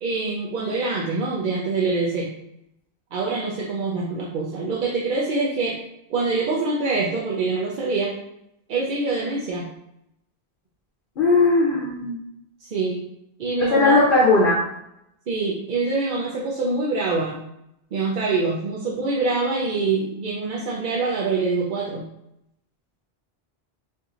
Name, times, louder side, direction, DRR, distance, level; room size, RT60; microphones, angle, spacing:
voice 1, 0.0-2.3 3.1-5.8 6.1-8.2 8.7-9.7 12.6-13.0 13.4-14.0 15.3-17.4 17.9-22.0, right 3 dB, 60° right, -3 dB, 0.6 m, -25 dB
voice 2, 11.2-12.2 13.7-14.6, left 3 dB, 60° left, -2 dB, 0.8 m, -17 dB
4.3 x 2.6 x 2.4 m, 0.82 s
omnidirectional pair, 1.1 m